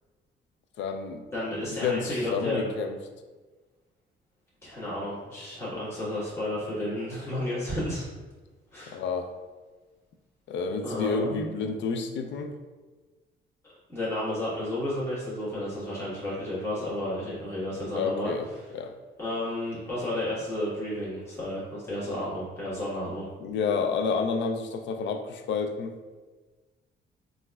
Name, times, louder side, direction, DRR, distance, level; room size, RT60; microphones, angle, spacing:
voice 1, 0.8-3.0 8.9-9.3 10.5-12.5 17.9-18.5 18.7-18.9 23.4-25.9, left 5 dB, 65° left, 6 dB, 0.4 m, -30 dB
voice 2, 1.3-2.7 4.6-8.0 8.7-9.0 10.8-11.6 13.9-18.3 19.2-23.3, left 1 dB, 15° left, -10 dB, 1.4 m, -32 dB
3.9 x 2.5 x 2.2 m, 1.3 s
cardioid pair, 90°, 20 cm